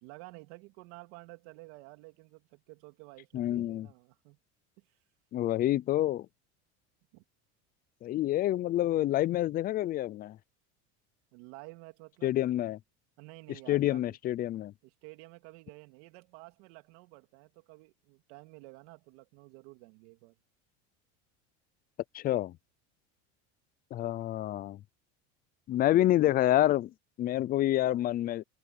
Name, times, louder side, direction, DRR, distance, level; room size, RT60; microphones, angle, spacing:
voice 1, 0.0-4.4 4.8-5.0 7.1-7.2 11.3-12.4 13.2-14.2 14.8-20.3, right 24 dB, 70° right, 2.8 m, -51 dB
voice 2, 3.3-3.9 5.3-6.3 8.0-10.4 12.2-12.8 13.7-14.7 22.1-22.6 23.9-24.8 25.7-26.9 27.2-28.4, left 14 dB, 25° left, 0.4 m, -28 dB
supercardioid pair, 145°, 36 cm